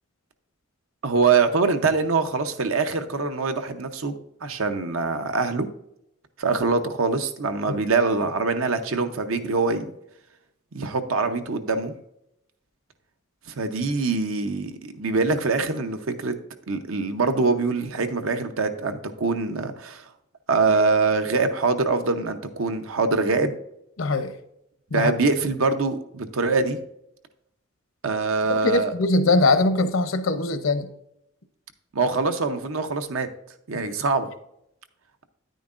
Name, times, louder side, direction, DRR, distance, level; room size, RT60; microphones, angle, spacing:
voice 1, 1.0-4.1 4.4-5.7 6.4-9.9 10.7-12.0 13.5-16.3 16.7-20.0 20.5-23.5 24.9-26.8 28.0-28.9 31.9-33.3 33.7-34.3, right 4 dB, 85° right, 8 dB, 0.8 m, -24 dB
voice 2, 24.0-24.3 24.9-25.1 28.6-30.9, left 2 dB, 75° left, 10 dB, 0.7 m, -21 dB
9.8 x 9.1 x 2.5 m, 0.80 s
head